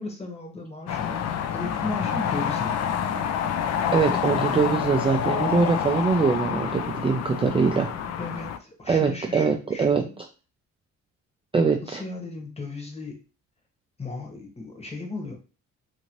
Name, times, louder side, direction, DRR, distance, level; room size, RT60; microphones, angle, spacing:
voice 1, 0.0-3.0 8.2-10.1 11.8-13.2 14.0-15.4, left 3 dB, 20° left, 2 dB, 1.0 m, -36 dB
sound 1, 0.9-8.6, left 8 dB, 60° left, 0.4 m, -27 dB
voice 2, 3.9-7.9 8.9-10.0 11.5-12.0, right 5 dB, 20° right, 3 dB, 0.4 m, -23 dB
2.7 x 2.6 x 2.9 m, 0.34 s
cardioid pair, 90°, 30 cm